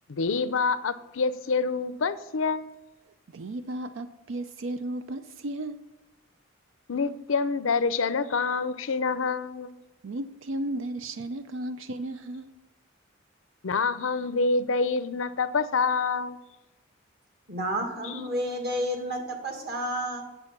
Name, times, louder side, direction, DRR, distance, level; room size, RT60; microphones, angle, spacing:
voice 1, 0.1-2.7 6.9-9.7 13.6-16.4, left 4 dB, 75° left, 0.6 m, -27 dB
voice 2, 3.0-5.9 10.0-12.5, right 1 dB, 70° right, 0.5 m, -34 dB
voice 3, 17.5-20.2, equal, 50° right, 2.0 m, -30 dB
8.8 x 7.7 x 6.0 m
head